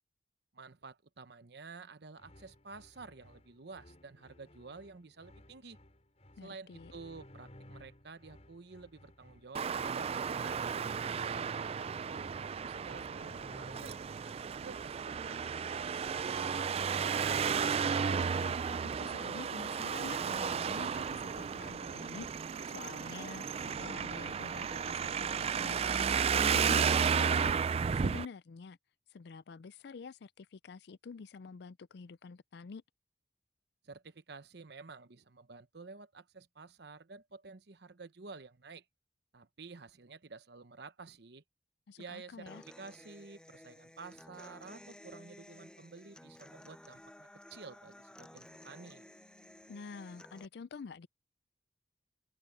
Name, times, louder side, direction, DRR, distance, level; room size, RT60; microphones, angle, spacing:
voice 1, 0.5-5.8 6.4-10.6 11.1-13.9 14.2-17.4 33.8-38.8 39.3-41.4 42.0-49.1, right 4 dB, 65° right, 0.9 m, -51 dB
sound 1, 2.2-14.2, left 1 dB, 40° left, 5.4 m, -58 dB
voice 2, 6.4-6.9 18.0-22.3 22.6-27.5 27.9-28.8 29.1-32.8 41.9-42.6 49.7-51.1, left 5 dB, 65° left, 0.4 m, -48 dB
Traffic noise roadway noise, 9.5-28.2, right 6 dB, 35° right, 0.3 m, -33 dB
Human voice / Acoustic guitar, 42.5-50.4, left 1 dB, 5° left, 0.6 m, -55 dB
open air
head